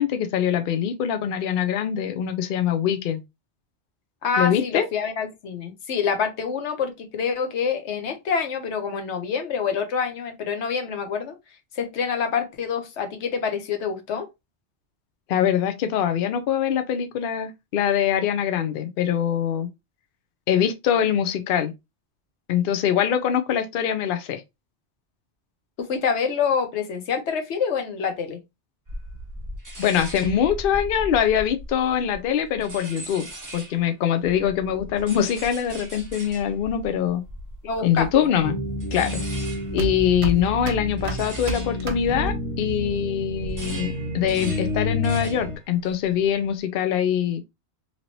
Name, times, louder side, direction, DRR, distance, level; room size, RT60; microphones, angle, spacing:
voice 1, 0.0-3.2 4.4-4.9 15.3-19.7 20.5-21.7 22.5-24.4 29.8-33.2 33.5-37.2 37.8-38.5 38.9-39.2 39.7-47.4, left 9 dB, 60° left, 0.7 m, -23 dB
voice 2, 4.2-11.3 11.8-14.3 25.8-28.4 37.6-38.1, left 6 dB, 75° left, 1.0 m, -26 dB
sound 1, 28.9-33.9 34.2-42.9 43.2-45.6 45.9-46.3, right 1 dB, 20° right, 0.8 m, -39 dB
sound 2, 36.7-42.7, right 3 dB, 70° right, 1.0 m, -33 dB
sound 3, 38.4-45.6, left 1 dB, 25° left, 0.9 m, -30 dB
3.1 x 2.9 x 2.6 m
omnidirectional pair, 1.2 m